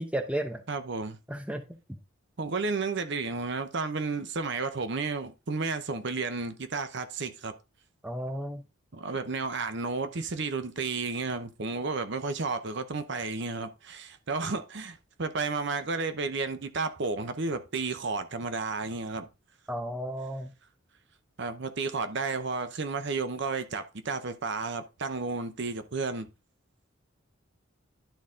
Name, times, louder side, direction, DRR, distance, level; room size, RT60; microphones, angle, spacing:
voice 1, 0.0-0.6 1.3-1.6 8.0-8.6 19.7-20.5, right 1 dB, 5° right, 0.8 m, -33 dB
voice 2, 0.7-1.2 2.4-7.5 8.9-19.3 21.4-26.3, right 4 dB, 55° right, 0.8 m, -32 dB
11.5 x 4.1 x 3.7 m
head